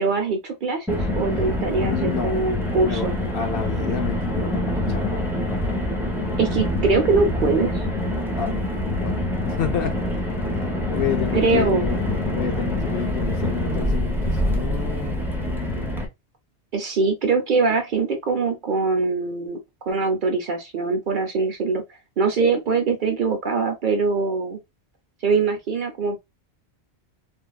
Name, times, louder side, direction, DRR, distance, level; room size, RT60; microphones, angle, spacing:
voice 1, 0.0-3.2 6.4-7.8 11.3-11.9 16.7-19.6 19.9-21.8 22.2-24.6 25.2-26.2, right 4 dB, 55° right, 0.6 m, -22 dB
Car, 0.9-16.1, left 1 dB, 5° right, 0.5 m, -25 dB
voice 2, 1.8-5.3 8.4-8.5 9.0-10.0 10.6-15.9, left 8 dB, 60° left, 0.8 m, -30 dB
3.4 x 2.3 x 2.2 m
omnidirectional pair, 1.2 m